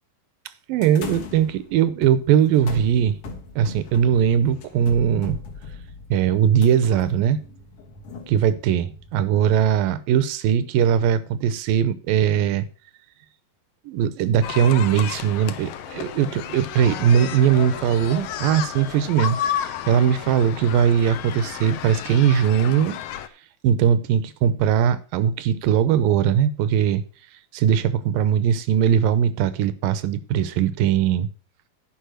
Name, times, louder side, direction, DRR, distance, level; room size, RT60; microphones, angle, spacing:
voice 1, 0.7-3.2 3.6-5.4 6.1-7.4 8.3-12.7 13.9-23.0 23.6-27.0 27.5-31.3, right 9 dB, 80° right, 14 dB, 2.4 m, -20 dB
sound 1, 0.8-9.1, left 4 dB, 55° left, 1.8 m, -39 dB
sound 2, 14.4-23.3, left 10 dB, 75° left, 1.8 m, -32 dB
10.5 x 5.3 x 6.2 m, 0.38 s
omnidirectional pair, 4.1 m